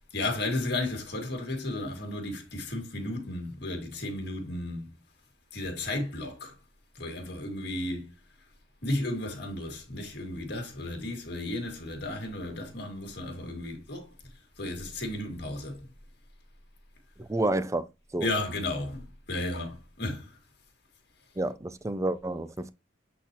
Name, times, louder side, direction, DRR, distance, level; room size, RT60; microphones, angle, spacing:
voice 1, 0.1-4.9 5.5-6.5 7.0-8.1 8.8-14.1 14.6-15.9 18.2-20.3, left 2 dB, 55° left, 1.9 m, -34 dB
voice 2, 17.2-17.9 18.1-18.3 21.4-22.7, right 2 dB, 15° right, 0.4 m, -29 dB
8.2 x 4.1 x 2.9 m
head